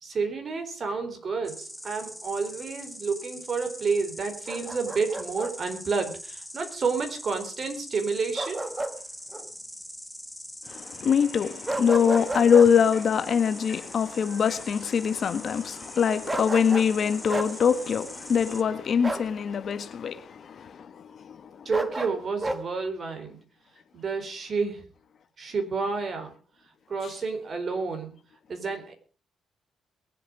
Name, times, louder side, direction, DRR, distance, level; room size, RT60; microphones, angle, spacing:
voice 1, 0.0-8.7 21.6-23.4 23.9-24.8 25.4-26.3 26.9-28.1 28.5-28.9, right 4 dB, 45° right, 4.3 m, -30 dB
Insect, 1.4-18.6, equal, ahead, 1.9 m, -42 dB
Bark, 4.5-5.5 8.4-9.0 9.3-9.5 11.7-12.7 16.3-16.9 17.3-17.5 19.0-19.3 21.7-22.6, right 2 dB, 20° right, 1.8 m, -31 dB
voice 2, 10.7-21.7, left 7 dB, 55° left, 1.6 m, -24 dB
22.5 x 7.9 x 5.0 m
cardioid pair, 90°, 0 cm